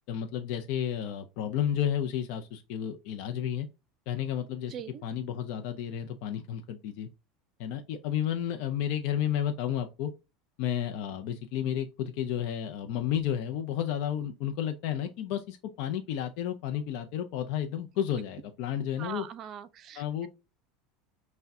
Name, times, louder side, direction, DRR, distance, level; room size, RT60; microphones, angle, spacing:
voice 1, 0.1-3.7 4.1-4.7 5.0-7.1 7.6-10.1 10.6-19.2 20.0-20.3, left 10 dB, 65° left, 0.5 m, -32 dB
voice 2, 4.7-5.0 19.0-20.3, right 9 dB, 40° right, 0.5 m, -41 dB
5.7 x 2.2 x 2.6 m
supercardioid pair, 125°, 0 cm